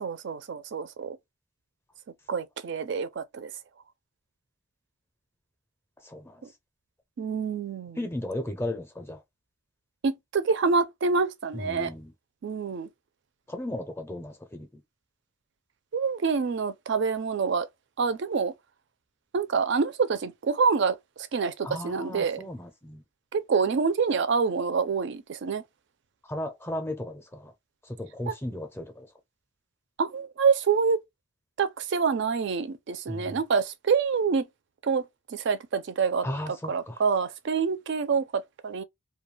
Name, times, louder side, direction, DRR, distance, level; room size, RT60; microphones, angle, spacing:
voice 1, 0.0-1.2 2.3-3.5 7.2-8.1 10.0-11.9 12.4-12.9 15.9-17.7 18.0-18.5 19.3-22.4 23.3-25.6 28.3-28.4 30.0-31.0 31.6-34.5 34.8-35.0 35.3-38.8, right 5 dB, 55° right, 0.4 m, -27 dB
voice 2, 8.0-9.2 11.5-12.1 13.5-14.7 21.6-23.0 26.3-27.5 28.0-29.1 33.1-33.4 36.2-36.9, left 1 dB, 10° left, 0.5 m, -35 dB
2.3 x 2.2 x 3.1 m
head